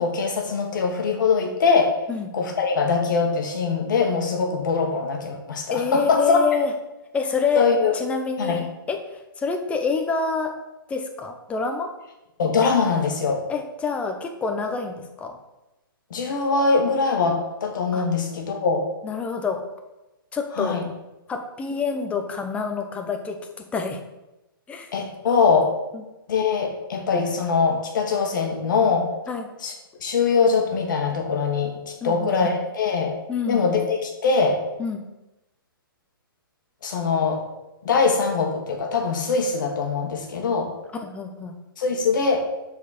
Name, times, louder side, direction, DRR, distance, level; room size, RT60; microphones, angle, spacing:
voice 1, 0.0-1.9 2.3-6.4 7.5-7.9 8.4-8.6 12.4-13.4 16.1-18.8 20.6-20.8 24.9-25.7 26.3-29.1 29.6-29.7 30.0-33.1 33.5-34.6 36.8-37.4 37.8-40.7 41.8-42.4, left 5 dB, 55° left, 2 dB, 1.5 m, -22 dB
voice 2, 5.7-6.7 7.1-7.7 7.9-10.5 10.9-11.9 13.5-15.4 17.9-18.1 19.0-19.6 20.3-20.8 21.3-24.0 24.7-24.9 25.9-26.0 29.3-29.5 32.0-32.5 33.3-33.6 34.8-35.0 41.0-41.5, left 5 dB, 10° left, 5 dB, 0.6 m, -27 dB
7.1 x 4.2 x 4.1 m, 0.99 s
hypercardioid pair, 135°, 12 cm